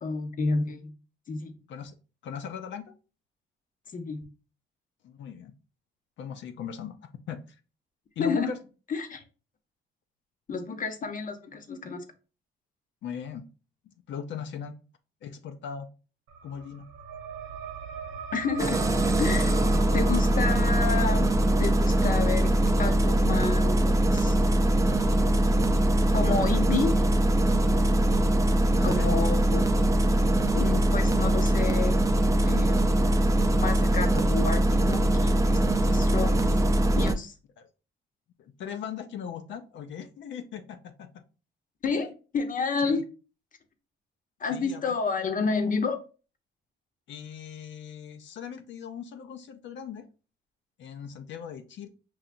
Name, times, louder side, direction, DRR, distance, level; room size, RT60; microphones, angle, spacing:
voice 1, 0.0-0.9 1.3-1.5 3.9-4.2 8.2-8.5 8.9-9.2 10.5-12.0 18.3-18.8 19.2-19.6 19.9-21.3 21.6-22.5 22.8-24.4 26.1-27.1 28.8-29.6 30.5-32.0 32.4-32.8 33.6-35.6 35.9-36.4 37.0-37.3 41.8-43.0 44.4-46.0, left 4 dB, 40° left, 0.8 m, -30 dB
voice 2, 2.2-2.9 5.0-5.5 6.2-7.0 7.3-7.4 8.2-8.6 13.0-13.4 14.1-14.8 15.2-15.9 16.4-16.9 28.7-29.1 37.6-37.7 38.4-41.2 42.8-43.0 44.5-44.9 47.1-50.1 50.8-51.9, left 8 dB, 70° left, 0.5 m, -39 dB
sound 1, 16.3-27.4, right 5 dB, 90° right, 0.6 m, -43 dB
Engine starting, 18.6-37.1, right 1 dB, 15° right, 0.5 m, -22 dB
5.6 x 2.7 x 2.5 m
cardioid pair, 90°, 20 cm